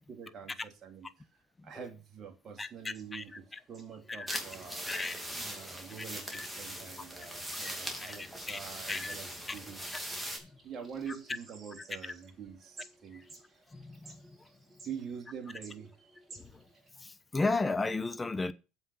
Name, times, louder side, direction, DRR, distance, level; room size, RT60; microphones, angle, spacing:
voice 1, 0.1-1.3 1.6-5.0 5.3-9.8 10.1-10.2 10.6-13.4 14.8-15.9, right 7 dB, 40° right, 2.4 m, -45 dB
voice 2, 2.6-3.2 4.1-4.4 4.9-5.1 6.3-6.5 7.6-8.2 8.5-8.6 8.9-9.1 12.0-12.1 13.7-14.2 17.0-18.5, left 3 dB, 20° left, 1.0 m, -34 dB
sound 1, 2.6-16.9, right 3 dB, 25° right, 4.0 m, -58 dB
sound 2, 4.3-10.4, equal, 5° right, 2.8 m, -41 dB
7.6 x 5.7 x 7.0 m
supercardioid pair, 90°, 0 cm